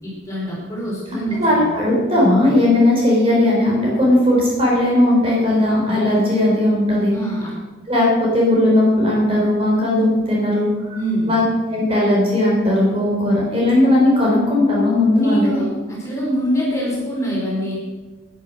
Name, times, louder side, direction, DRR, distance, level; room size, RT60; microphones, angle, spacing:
voice 1, 0.0-1.7 7.1-7.5 10.9-11.3 15.1-17.7, right 1 dB, 15° left, -5 dB, 4.6 m, -24 dB
voice 2, 1.4-7.1 7.9-11.0 11.3-11.4 11.7-15.5, left 1 dB, 30° right, -4 dB, 3.5 m, -17 dB
11.5 x 10.5 x 6.3 m, 1.2 s
head